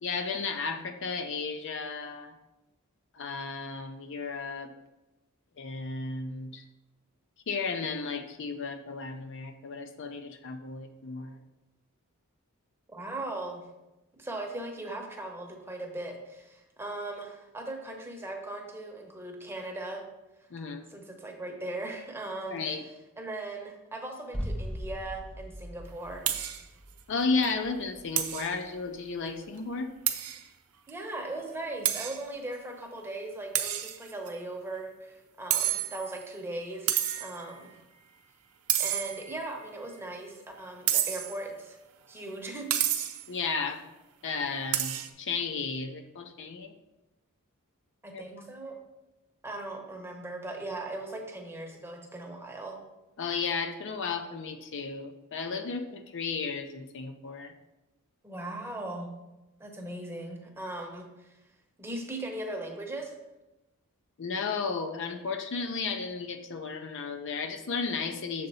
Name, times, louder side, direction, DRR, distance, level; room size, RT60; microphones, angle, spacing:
voice 1, 0.0-2.3 3.1-4.7 5.6-6.6 7.5-11.4 20.5-20.8 22.5-22.8 27.1-29.9 43.3-43.8 44.2-46.7 48.1-48.2 53.2-57.5 64.2-68.5, left 4 dB, 55° left, 7 dB, 0.5 m, -33 dB
voice 2, 12.9-13.6 14.1-20.1 20.9-22.6 23.2-26.3 30.9-36.9 37.2-37.7 38.8-41.8 42.1-42.7 48.0-48.8 49.4-52.8 58.2-59.1 59.6-61.4 61.8-63.2, right 2 dB, 10° right, 2 dB, 0.9 m, -38 dB
Deep Impact, 24.3-30.1 30.3-30.4, equal, 5° left, 0.5 m, -41 dB
sound 1, 26.3-26.6 27.0-27.1 27.4-27.5 28.2-28.5 30.1-30.4 30.9-31.0 31.8-32.2 33.5-34.3 35.5-36.2 36.9-37.4 38.7-39.4 40.9-41.4 42.7-43.3 44.7-45.1, right 11 dB, 80° right, 0.6 m, -29 dB
6.8 x 3.9 x 5.4 m, 0.99 s
head